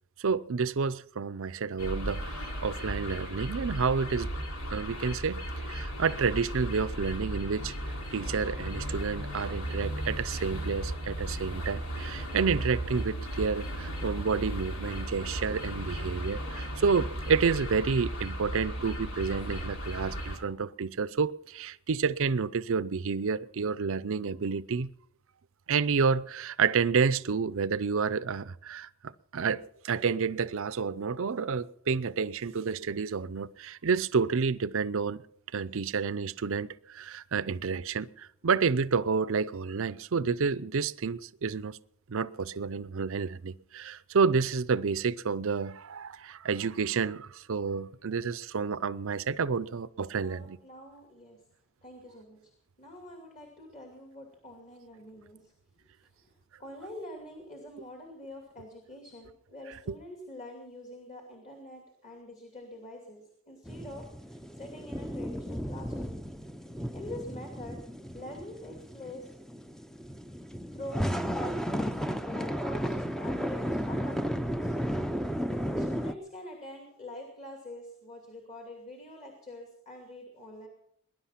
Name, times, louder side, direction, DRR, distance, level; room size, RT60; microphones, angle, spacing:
voice 1, 0.2-4.3 4.7-24.9 25.7-35.2 35.5-41.8 42.1-50.6 59.9-60.0, right 5 dB, 65° right, 0.6 m, -30 dB
sound 1, 1.8-20.4, right 1 dB, 80° left, 3.4 m, -35 dB
voice 2, 16.4-16.7 49.5-49.6 50.2-51.4 51.8-52.5 52.8-56.3 56.6-66.2 66.9-67.8 68.1-69.3 70.7-74.8 75.7-80.7, left 1 dB, 35° left, 2.7 m, -45 dB
sound 2, 63.6-76.1, equal, ahead, 0.6 m, -34 dB
21.0 x 11.0 x 5.8 m
head